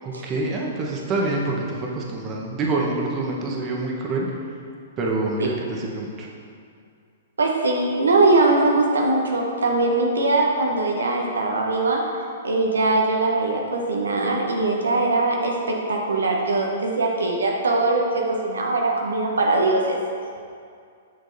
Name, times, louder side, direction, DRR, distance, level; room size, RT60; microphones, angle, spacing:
voice 1, 0.0-4.3 5.0-6.3, right 2 dB, 30° right, -2 dB, 1.0 m, -26 dB
voice 2, 7.4-12.0 12.4-20.0, right 2 dB, 85° right, 0 dB, 0.8 m, -21 dB
6.6 x 6.3 x 2.7 m, 2.3 s
hypercardioid pair, 120°, 0 cm